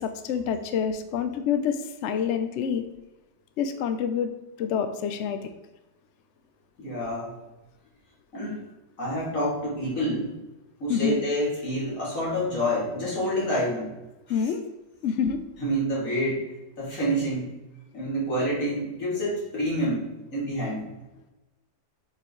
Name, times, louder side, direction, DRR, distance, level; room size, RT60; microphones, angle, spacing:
voice 1, 0.0-2.8 3.6-4.3 4.6-5.5 10.9-11.2 14.3-14.6 15.0-15.4, left 7 dB, 75° left, 8 dB, 0.6 m, -27 dB
voice 2, 6.8-7.3 8.3-8.6 9.0-10.4 10.8-13.9 14.3-14.5 15.6-16.4 16.8-17.5 17.9-20.0 20.3-20.8, equal, 45° left, -6 dB, 3.1 m, -28 dB
7.7 x 5.7 x 3.2 m, 1.1 s
omnidirectional pair, 1.9 m